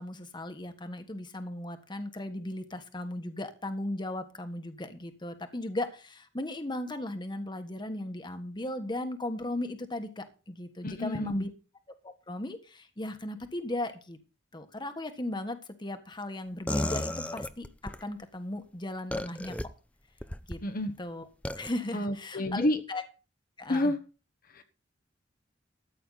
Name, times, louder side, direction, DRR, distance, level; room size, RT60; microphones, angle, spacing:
voice 1, 0.0-11.5 12.0-14.2 14.5-17.7 18.0-19.5 20.5-20.6 21.0-21.3 21.6-23.0 23.6-23.9, left 1 dB, 25° left, 8 dB, 1.5 m, -37 dB
voice 2, 10.8-11.5 20.6-20.9 21.9-22.8 23.7-24.0 24.5-24.6, left 1 dB, 50° left, 8 dB, 1.2 m, -29 dB
sound 1, 16.7-18.0 19.1-19.6 20.2-20.6 21.4-21.7, left 1 dB, 5° left, 0.6 m, -33 dB
14.0 x 9.1 x 4.1 m, 0.33 s
head